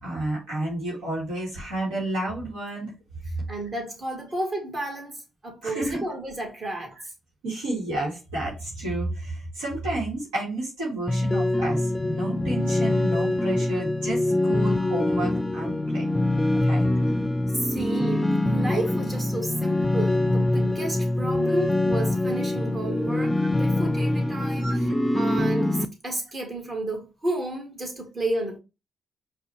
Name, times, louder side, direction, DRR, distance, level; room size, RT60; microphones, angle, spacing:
voice 1, 0.0-2.9 5.6-6.0 7.4-16.1 16.5-16.9 24.6-24.8, right 1 dB, 90° right, 1.4 m, -31 dB
voice 2, 3.5-7.0 17.5-28.6, right 1 dB, 40° right, 1.8 m, -32 dB
sound 1, 11.1-25.9, left 1 dB, 15° left, 0.5 m, -24 dB
4.9 x 2.5 x 2.9 m
hypercardioid pair, 50°, 0 cm